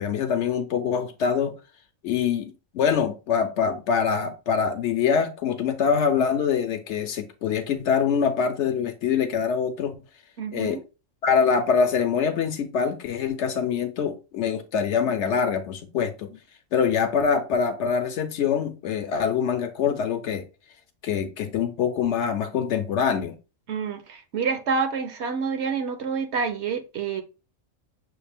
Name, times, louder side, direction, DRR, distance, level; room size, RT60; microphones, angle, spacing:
voice 1, 0.0-1.5 2.0-9.9 10.5-10.8 11.2-16.4 16.7-20.4 21.0-23.3, left 6 dB, 65° left, 0.8 m, -24 dB
voice 2, 10.4-10.8 23.7-27.2, right 5 dB, 65° right, 0.8 m, -28 dB
6.4 x 2.4 x 3.4 m
omnidirectional pair, 1.4 m